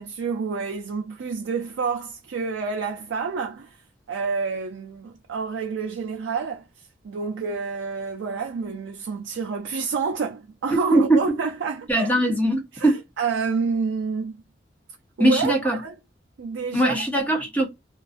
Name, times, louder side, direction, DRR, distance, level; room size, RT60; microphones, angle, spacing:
voice 1, 0.0-3.8 4.1-6.6 7.0-12.1 12.8-14.4 15.2-15.9 16.4-17.0, right 5 dB, 80° right, 0.4 m, -28 dB
voice 2, 10.7-11.2 11.9-13.0 15.2-15.8 16.7-17.7, right 1 dB, 10° left, 0.6 m, -21 dB
2.4 x 2.3 x 2.4 m
head